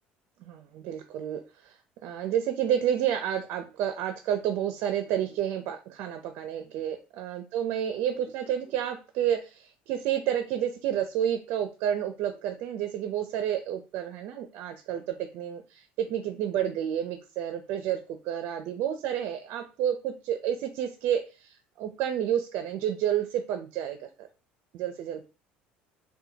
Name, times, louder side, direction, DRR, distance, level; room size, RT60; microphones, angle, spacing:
voice 1, 0.4-1.7 2.0-24.3 24.7-25.2, right 10 dB, 65° right, 7 dB, 0.5 m, -30 dB
4.2 x 2.2 x 2.7 m, 0.31 s
supercardioid pair, 105°, 4 cm